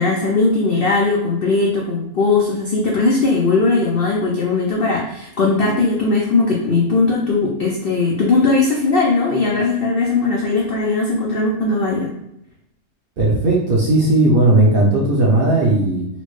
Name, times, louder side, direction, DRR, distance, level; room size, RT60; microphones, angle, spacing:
voice 1, 0.0-12.1, left 3 dB, 90° left, -2 dB, 0.5 m, -18 dB
voice 2, 13.2-16.1, right 2 dB, 55° right, -4 dB, 0.6 m, -15 dB
4.3 x 2.0 x 3.0 m, 0.79 s
omnidirectional pair, 1.6 m